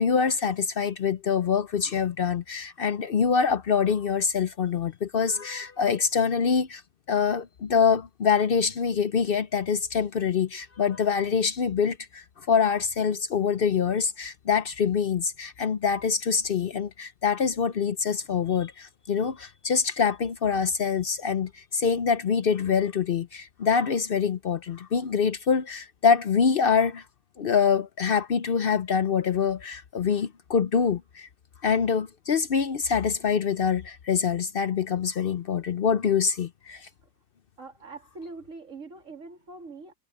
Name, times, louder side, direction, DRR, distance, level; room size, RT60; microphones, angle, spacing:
voice 1, 0.0-6.8 7.1-27.0 27.4-31.3 31.6-36.9, left 6 dB, 60° left, 0.6 m, -25 dB
voice 2, 37.6-39.9, right 3 dB, 50° right, 3.1 m, -43 dB
omnidirectional pair, 1.7 m